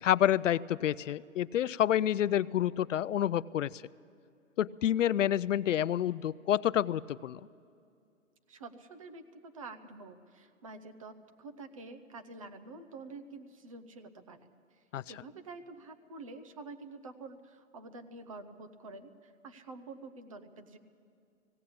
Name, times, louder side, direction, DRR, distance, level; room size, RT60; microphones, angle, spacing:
voice 1, 0.0-3.8 4.6-7.4 14.9-15.0, left 11 dB, 70° left, 19 dB, 0.5 m, -28 dB
voice 2, 8.5-20.8, right 3 dB, 25° right, 8 dB, 0.7 m, -48 dB
18.5 x 17.0 x 8.6 m, 2.4 s
hypercardioid pair, 170°, 40 cm